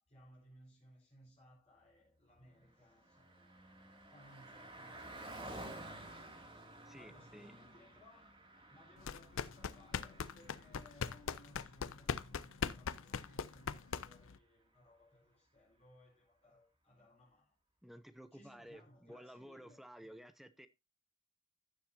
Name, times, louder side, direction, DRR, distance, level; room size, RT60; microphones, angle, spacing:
voice 1, 0.0-6.3 6.9-8.4 8.7-17.5 18.3-19.8, equal, 30° left, 4.3 m, -63 dB
Car passing by, 2.4-14.2, right 1 dB, 25° right, 2.3 m, -54 dB
voice 2, 6.9-7.5 17.8-20.7, equal, ahead, 0.6 m, -54 dB
sound 1, 9.0-14.4, left 6 dB, 65° left, 0.6 m, -40 dB
15.5 x 7.2 x 2.6 m
head